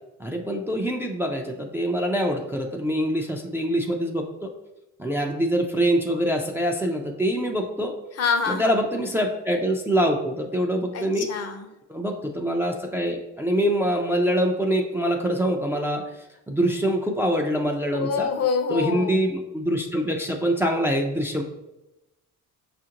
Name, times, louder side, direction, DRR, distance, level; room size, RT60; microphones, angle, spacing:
voice 1, 0.2-4.5 5.0-7.9 8.5-11.3 11.9-16.0 16.5-18.3 18.7-21.4, equal, 5° right, 1 dB, 0.3 m, -24 dB
voice 2, 8.2-8.7 10.9-11.6 17.9-19.2, left 5 dB, 50° left, 6 dB, 0.6 m, -26 dB
5.6 x 2.5 x 2.8 m, 0.94 s
cardioid pair, 100°, 32 cm